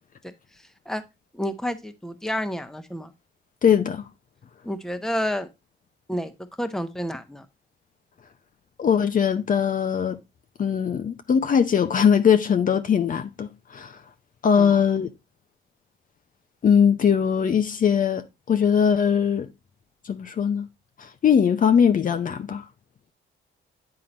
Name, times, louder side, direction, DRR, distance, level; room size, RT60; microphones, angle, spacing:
voice 1, 1.3-3.1 4.6-5.5 6.1-6.3 6.6-7.4 14.6-14.8, equal, ahead, 1.0 m, -29 dB
voice 2, 3.6-4.0 8.8-10.2 10.6-14.0 14.4-15.1 16.6-18.2 18.5-19.5 20.0-20.7 21.0-22.7, left 7 dB, 45° left, 0.7 m, -21 dB
9.6 x 3.8 x 4.2 m
cardioid pair, 90°, 20 cm